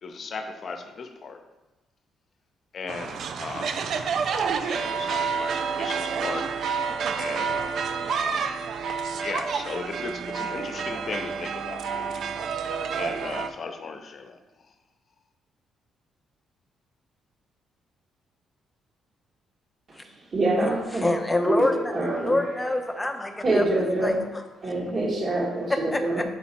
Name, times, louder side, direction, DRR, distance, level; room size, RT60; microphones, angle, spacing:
voice 1, 0.0-1.4 2.7-3.9 4.6-6.5 7.2-7.8 8.1-8.5 9.2-12.3 13.0-14.4, left 4 dB, 50° left, 6 dB, 0.7 m, -36 dB
sound 1, 2.9-13.5, right 6 dB, 65° right, 0.4 m, -29 dB
voice 2, 20.3-21.0 21.4-21.6 21.9-22.7 23.4-24.1 24.6-26.2, right 2 dB, 40° right, -4 dB, 1.6 m, -25 dB
voice 3, 21.0-21.9 22.2-23.7 24.0-24.4 25.7-26.2, left 1 dB, 15° left, 4 dB, 0.8 m, -26 dB
6.7 x 4.2 x 4.2 m, 1.1 s
cardioid pair, 90°, 0 cm